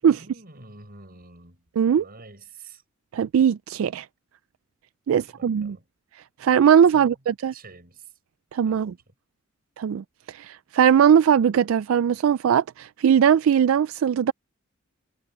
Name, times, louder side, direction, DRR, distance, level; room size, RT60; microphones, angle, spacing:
voice 1, 0.0-1.6 2.0-2.8 5.1-5.9 6.9-7.2 7.5-8.1 8.6-9.1, right 3 dB, 50° right, 6.9 m, -47 dB
voice 2, 3.1-4.1 5.1-5.8 6.4-7.5 8.5-8.9 9.8-14.3, right 8 dB, 80° right, 0.3 m, -20 dB
head